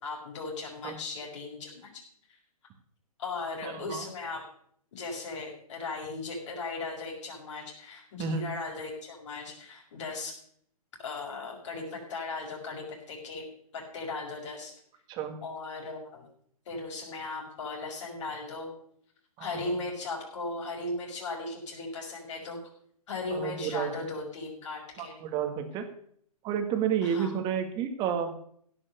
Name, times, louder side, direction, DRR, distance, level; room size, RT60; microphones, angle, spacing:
voice 1, 0.0-1.9 3.2-4.4 4.9-10.3 11.0-13.4 13.7-14.7 15.4-16.3 16.7-18.7 19.4-22.6 23.1-25.2 27.0-27.3, left 3 dB, 50° left, -1 dB, 5.8 m, -37 dB
voice 2, 3.6-4.1 8.2-8.4 15.1-15.4 19.4-19.8 23.3-23.9 25.0-25.9 26.4-28.4, right 8 dB, 20° right, 7 dB, 1.8 m, -31 dB
16.5 x 6.3 x 6.7 m, 0.63 s
hypercardioid pair, 140°, 20 cm